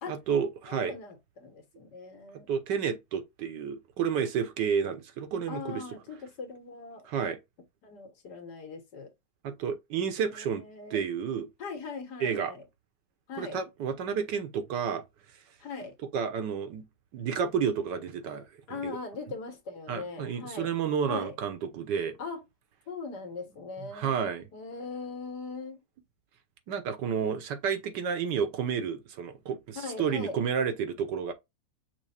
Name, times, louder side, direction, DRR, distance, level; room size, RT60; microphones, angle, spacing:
voice 1, 0.1-1.0 2.5-5.8 7.0-7.4 9.4-10.6 10.9-11.5 12.2-12.5 13.4-15.0 16.1-16.8 17.1-19.0 19.9-22.2 23.9-24.5 26.7-31.3, right 7 dB, 75° right, 1.4 m, -31 dB
voice 2, 0.7-2.5 5.5-7.0 7.8-9.1 10.3-11.0 11.6-12.6 13.3-13.6 15.6-15.9 18.7-20.7 21.1-21.3 22.2-22.4 22.9-24.2 24.5-25.8 29.7-30.4, left 4 dB, 70° left, 1.7 m, -40 dB
6.1 x 2.1 x 4.1 m
omnidirectional pair, 1.9 m